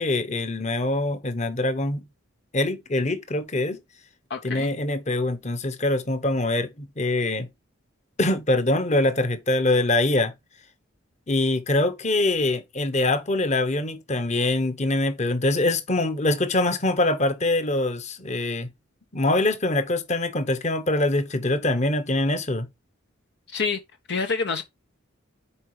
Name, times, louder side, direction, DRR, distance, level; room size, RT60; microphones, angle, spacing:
voice 1, 0.0-2.0 2.5-3.8 4.4-7.5 8.2-10.3 11.3-18.7 19.1-22.7, left 2 dB, 35° left, 1.1 m, -24 dB
voice 2, 4.3-4.7 23.5-23.8 24.1-24.6, left 4 dB, 60° left, 0.7 m, -27 dB
7.4 x 4.7 x 4.8 m
head